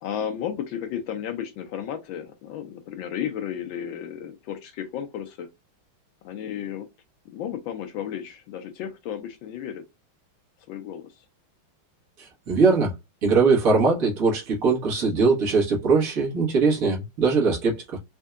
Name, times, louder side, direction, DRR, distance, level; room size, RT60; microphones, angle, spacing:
voice 1, 0.0-5.5 6.2-6.9 7.3-9.8 10.7-11.2, left 9 dB, 75° left, 1.3 m, -33 dB
voice 2, 12.2-12.9 13.2-18.0, right 4 dB, 45° right, 1.7 m, -21 dB
4.4 x 2.6 x 2.3 m
omnidirectional pair, 2.3 m